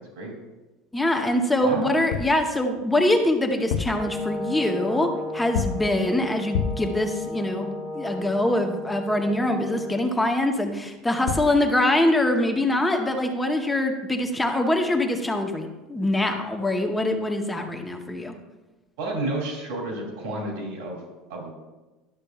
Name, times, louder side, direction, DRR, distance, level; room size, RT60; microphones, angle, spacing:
voice 1, 0.9-18.3, left 1 dB, 10° left, 4 dB, 0.7 m, -24 dB
sound 1, 2.1-2.4 3.5-4.1 5.5-5.9 6.5-6.9 11.0-11.1 11.3-11.6, left 6 dB, 80° left, 0.5 m, -28 dB
Brass instrument, 4.0-10.1, left 2 dB, 20° right, 1.1 m, -34 dB
voice 2, 19.0-21.0 21.3-21.5, right 2 dB, 80° right, 0 dB, 2.5 m, -31 dB
11.5 x 6.7 x 2.3 m, 1.1 s
cardioid pair, 150°, 0 cm